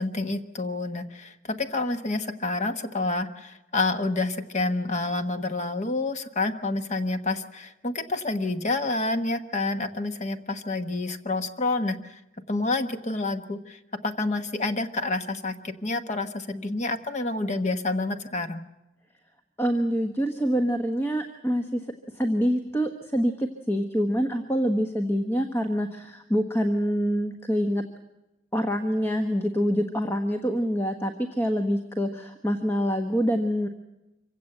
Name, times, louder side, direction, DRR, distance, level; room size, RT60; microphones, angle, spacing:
voice 1, 0.0-12.2 12.5-18.6, left 2 dB, 40° left, 8 dB, 1.2 m, -28 dB
voice 2, 19.6-21.8 22.1-27.8 28.5-33.7, equal, 15° left, 5 dB, 1.3 m, -26 dB
25.5 x 16.5 x 8.0 m, 0.96 s
head